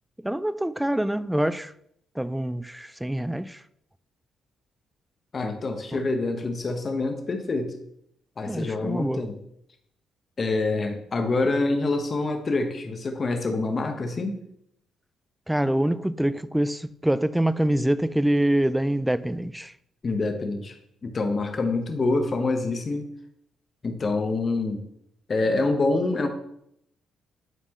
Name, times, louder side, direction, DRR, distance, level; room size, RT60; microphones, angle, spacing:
voice 1, 0.2-1.7 2.2-3.6 5.9-6.0 8.5-9.3 15.5-19.7, right 1 dB, 5° right, 0.3 m, -25 dB
voice 2, 5.3-7.7 8.4-9.3 10.4-14.4 20.0-20.8 21.0-23.0 23.8-24.8 25.3-26.3, left 3 dB, 40° left, 1.1 m, -26 dB
11.0 x 4.2 x 3.0 m
cardioid pair, 90°, 0 cm